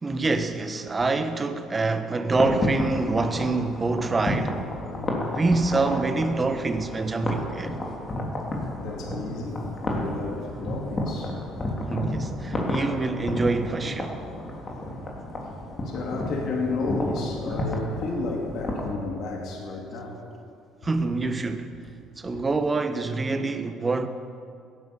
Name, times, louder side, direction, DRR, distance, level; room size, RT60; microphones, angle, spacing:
voice 1, 0.0-4.6 5.3-7.7 11.9-14.2 17.5-17.6 20.8-21.7 22.2-24.1, right 3 dB, 25° right, 1.3 m, -26 dB
sound 1, 2.3-19.0, left 1 dB, 30° left, 3.2 m, -31 dB
voice 2, 5.0-5.3 8.8-11.3 15.9-20.2, left 3 dB, 65° left, 2.5 m, -32 dB
16.5 x 11.0 x 7.1 m
supercardioid pair, 75°, 0 cm